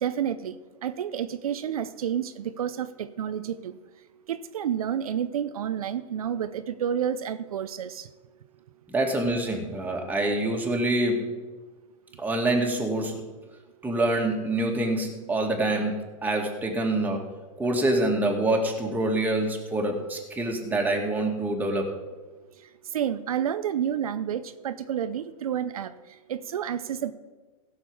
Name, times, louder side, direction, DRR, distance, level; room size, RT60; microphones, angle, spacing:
voice 1, 0.0-0.6 0.8-3.8 4.3-8.1 22.9-25.9 26.3-27.1, right 9 dB, 85° right, 11 dB, 0.6 m, -30 dB
voice 2, 8.9-11.4 12.2-13.2 13.8-17.2 17.6-21.9, right 1 dB, 10° right, 0 dB, 2.3 m, -26 dB
16.0 x 6.7 x 5.5 m, 1.3 s
hypercardioid pair, 110°, 18 cm